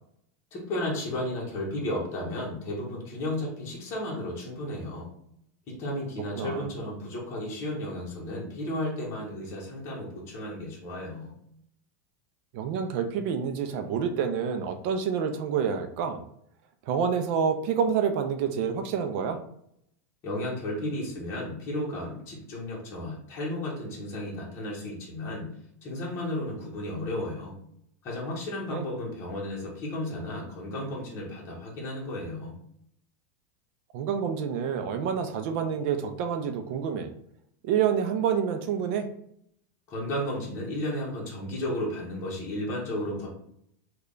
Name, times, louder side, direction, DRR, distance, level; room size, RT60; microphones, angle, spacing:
voice 1, 0.5-5.1 5.7-11.3 20.2-25.5 25.8-27.5 28.0-32.5 39.9-43.3, left 1 dB, 30° left, -4 dB, 0.9 m, -33 dB
voice 2, 6.3-6.7 12.5-16.2 16.9-19.4 28.7-28.9 33.9-37.1 37.6-39.1, right 7 dB, 45° right, 7 dB, 0.4 m, -28 dB
3.2 x 2.2 x 3.7 m, 0.71 s
supercardioid pair, 170°, 9 cm